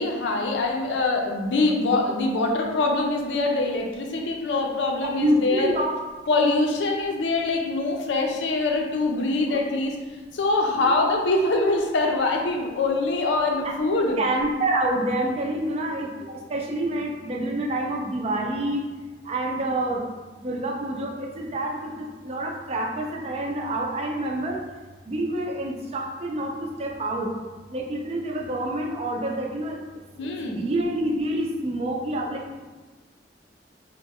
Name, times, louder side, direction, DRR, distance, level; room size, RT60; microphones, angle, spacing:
voice 1, 0.0-5.7 6.3-10.0 10.3-14.2 30.2-30.6, left 2 dB, 85° left, 1 dB, 0.5 m, -24 dB
voice 2, 5.0-6.0 9.5-9.6 10.7-11.0 13.6-13.7 14.2-18.8 19.2-20.0 20.4-24.6 25.1-27.3 27.7-29.8 30.2-32.6, right 1 dB, 35° right, 0 dB, 0.4 m, -27 dB
2.9 x 2.1 x 3.6 m, 1.2 s
head